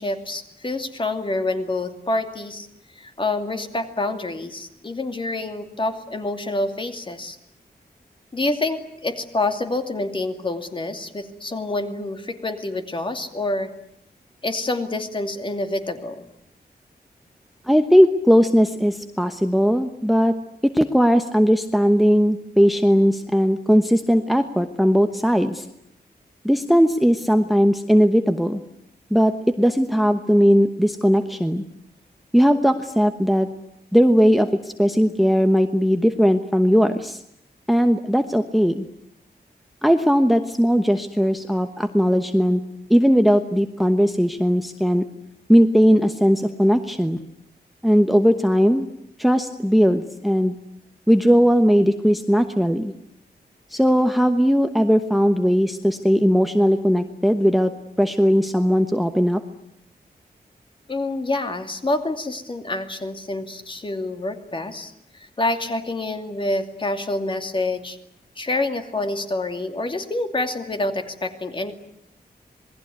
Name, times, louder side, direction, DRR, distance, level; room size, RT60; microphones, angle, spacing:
voice 1, 0.0-2.7 3.0-7.4 8.3-13.7 14.4-16.3 60.9-64.9 65.2-68.0 68.4-71.7, left 2 dB, 30° left, 6 dB, 2.6 m, -27 dB
voice 2, 17.7-20.3 20.7-25.6 26.4-28.6 29.1-31.6 32.3-33.5 33.9-37.2 37.7-38.8 39.8-42.6 42.9-45.0 45.5-47.2 47.8-48.9 49.2-50.5 51.1-52.9 53.7-57.7 58.0-59.4, equal, ahead, 8 dB, 1.1 m, -18 dB
27.5 x 20.5 x 9.5 m, 0.74 s
wide cardioid pair, 175°, 17 cm